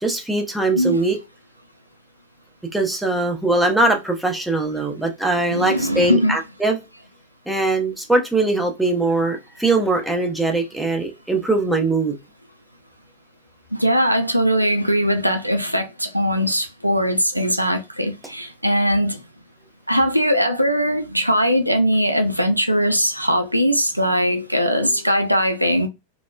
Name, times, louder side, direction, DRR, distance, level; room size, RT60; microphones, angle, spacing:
voice 1, 0.0-1.2 2.7-6.8 7.5-12.2, right 2 dB, 5° right, 0.6 m, -21 dB
voice 2, 5.5-6.4 13.7-19.2 19.9-25.9, equal, 90° right, 0.3 m, -20 dB
3.0 x 2.0 x 2.2 m
figure-of-eight pair, 90°, 0 cm